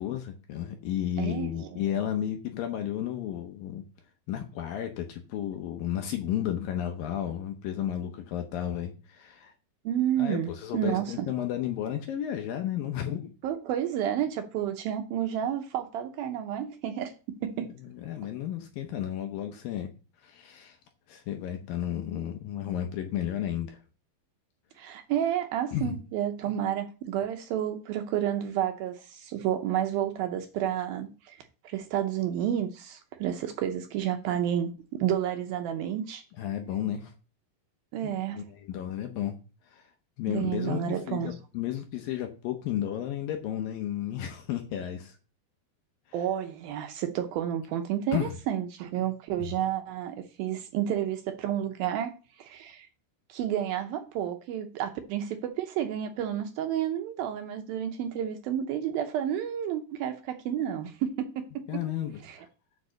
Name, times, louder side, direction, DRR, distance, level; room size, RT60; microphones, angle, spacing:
voice 1, 0.0-3.8 4.3-9.5 10.2-13.3 17.6-19.9 20.2-20.8 21.1-23.8 25.7-26.0 36.4-37.1 38.0-39.4 39.7-39.9 40.2-45.2 48.1-48.4 49.4-49.5 61.7-62.5, left 11 dB, 75° left, 2.3 m, -33 dB
voice 2, 1.2-1.8 9.9-11.3 13.4-17.1 17.4-17.7 24.8-31.4 31.6-36.2 37.9-38.4 40.3-41.4 46.1-52.1 52.4-52.9 53.3-61.8 62.2-62.4, right 10 dB, 75° right, 2.3 m, -30 dB
8.3 x 4.9 x 6.4 m
omnidirectional pair, 4.8 m